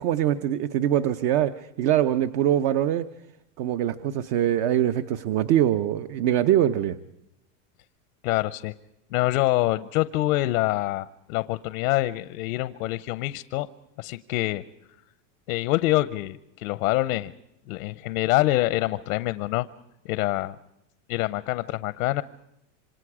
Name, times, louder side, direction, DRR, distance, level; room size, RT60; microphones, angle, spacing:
voice 1, 0.0-3.1 3.6-7.0, right 11 dB, 50° right, 10 dB, 0.9 m, -23 dB
voice 2, 8.2-8.7 9.1-13.7 14.0-14.6 15.5-17.3 17.7-19.7 20.0-20.6 21.1-22.2, left 17 dB, 85° left, 14 dB, 0.8 m, -25 dB
26.5 x 26.0 x 4.9 m, 0.88 s
supercardioid pair, 135°, 42 cm